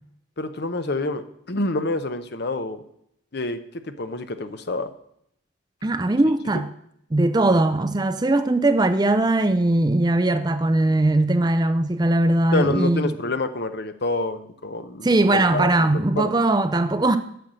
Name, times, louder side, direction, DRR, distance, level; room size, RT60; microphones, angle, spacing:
voice 1, 0.4-2.8 3.3-3.6 3.8-4.9 12.5-16.3, left 2 dB, 50° left, 0.8 m, -27 dB
voice 2, 5.8-6.7 7.1-13.2 15.0-17.2, right 2 dB, 20° right, 0.5 m, -20 dB
9.3 x 6.5 x 7.6 m
head